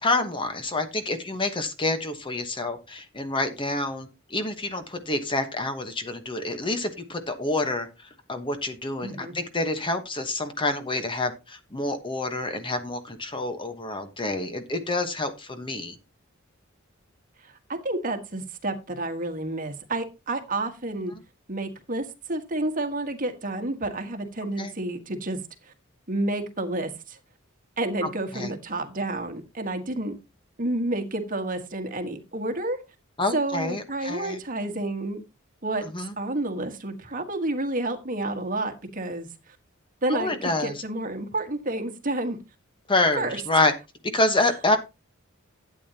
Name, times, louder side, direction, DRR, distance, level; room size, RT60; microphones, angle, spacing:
voice 1, 0.0-7.9 8.3-15.9 24.6-24.7 28.3-28.5 33.2-34.4 35.8-36.1 40.1-40.7 42.9-43.7 44.1-44.8, left 2 dB, 25° left, 8 dB, 1.1 m, -27 dB
voice 2, 9.0-9.3 17.4-21.1 21.5-25.7 26.1-27.2 27.8-30.2 30.6-32.8 33.3-35.2 35.6-35.9 36.2-39.6 40.0-42.4 43.2-43.4, right 2 dB, 40° right, 7 dB, 1.5 m, -30 dB
12.0 x 8.6 x 2.8 m, 0.25 s
head